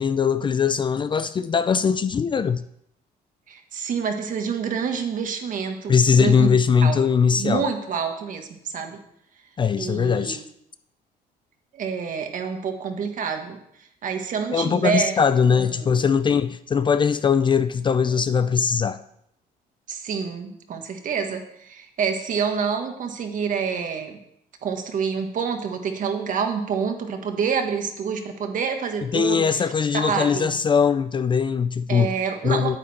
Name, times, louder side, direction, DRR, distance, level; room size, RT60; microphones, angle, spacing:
voice 1, 0.0-2.6 5.9-7.6 9.6-10.4 14.5-19.0 29.0-32.1 32.4-32.8, left 6 dB, 30° left, 13 dB, 0.4 m, -21 dB
voice 2, 3.5-7.0 7.4-9.0 9.8-10.4 11.7-13.6 14.0-15.2 15.5-16.0 19.9-24.2 24.6-30.5 31.9-32.8, right 6 dB, 50° right, 5 dB, 1.5 m, -27 dB
9.2 x 8.4 x 4.2 m, 0.74 s
cardioid pair, 110°, 17 cm